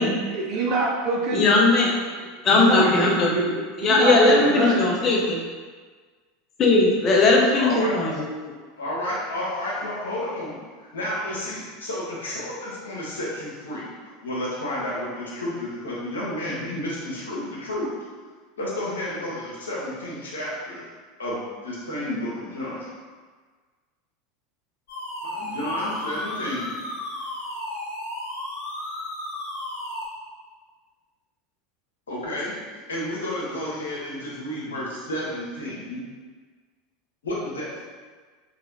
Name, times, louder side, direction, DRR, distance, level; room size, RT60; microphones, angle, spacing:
voice 1, 0.0-1.4 2.2-4.8 25.2-25.6, right 3 dB, 50° right, -1 dB, 0.7 m, -27 dB
voice 2, 1.3-1.9 2.4-3.3 3.8-5.4 6.6-8.4, left 3 dB, 40° left, -2 dB, 0.8 m, -19 dB
voice 3, 2.7-3.2 4.4-4.5 7.6-7.9 8.8-10.6 10.9-13.9 14.2-17.9 18.6-20.9 21.2-22.9 25.5-26.8 32.1-32.5 32.9-36.0 37.2-37.8, left 1 dB, 80° left, -6 dB, 1.1 m, -31 dB
sound 1, 24.9-30.1, left 1 dB, 65° left, 1.5 m, -34 dB
4.1 x 2.8 x 2.7 m, 1.5 s
hypercardioid pair, 80°, 0 cm